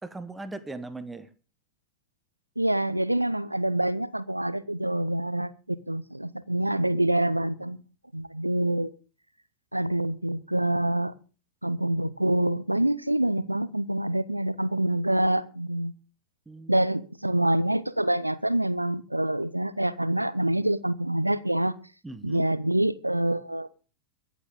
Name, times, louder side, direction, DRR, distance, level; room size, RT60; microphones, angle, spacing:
voice 1, 0.0-1.3 16.5-16.9 22.0-22.4, right 2 dB, 10° right, 1.1 m, -39 dB
voice 2, 2.6-7.8 8.1-8.9 9.7-11.1 11.6-15.9 16.7-21.7 22.2-23.7, right 1 dB, 85° right, 0.7 m, -26 dB
23.5 x 8.4 x 3.7 m
figure-of-eight pair, 90°, 0 cm